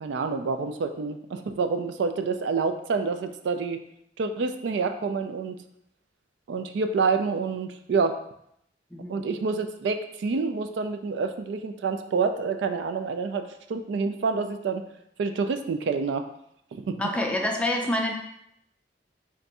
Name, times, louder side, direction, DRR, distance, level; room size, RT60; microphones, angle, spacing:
voice 1, 0.0-3.8 4.2-5.6 6.5-8.2 9.1-14.8 15.2-16.3 16.7-17.0, right 4 dB, 70° right, 7 dB, 0.3 m, -28 dB
voice 2, 8.9-9.2 17.0-18.1, left 1 dB, 5° left, 1 dB, 0.4 m, -27 dB
3.4 x 2.6 x 4.1 m, 0.74 s
head